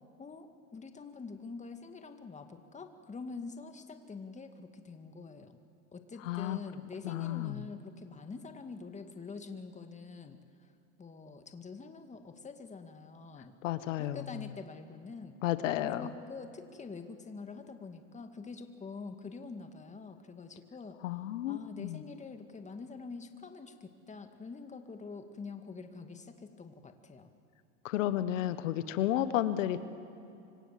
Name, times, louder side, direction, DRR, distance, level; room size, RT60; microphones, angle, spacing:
voice 1, 0.2-5.6 5.9-10.4 11.0-13.5 14.0-15.4 15.8-21.0 21.5-27.3, left 4 dB, 20° left, 7 dB, 2.1 m, -45 dB
voice 2, 6.2-6.6 7.0-7.6 13.6-14.4 15.4-16.1 21.0-22.0 27.8-29.8, left 12 dB, 90° left, 12 dB, 1.3 m, -32 dB
25.5 x 25.5 x 7.6 m, 2.7 s
supercardioid pair, 110°, 37 cm